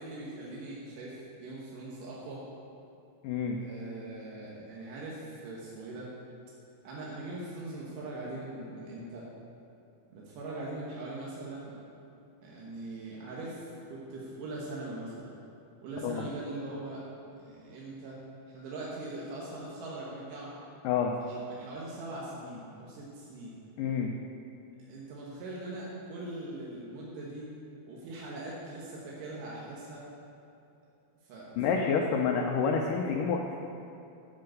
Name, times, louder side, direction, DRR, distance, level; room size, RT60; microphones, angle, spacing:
voice 1, 0.0-2.4 3.6-6.1 6.8-9.3 10.1-11.7 12.4-15.3 15.8-17.1 17.4-18.2 18.5-20.6 21.2-23.5 24.8-27.5 27.9-30.0 31.2-31.6, right 2 dB, 65° right, -5 dB, 2.6 m, -41 dB
voice 2, 3.2-3.6 16.0-16.3 20.8-21.1 23.8-24.1 31.6-33.6, left 6 dB, 90° left, 1 dB, 1.8 m, -28 dB
7.7 x 6.8 x 7.7 m, 2.7 s
omnidirectional pair, 4.5 m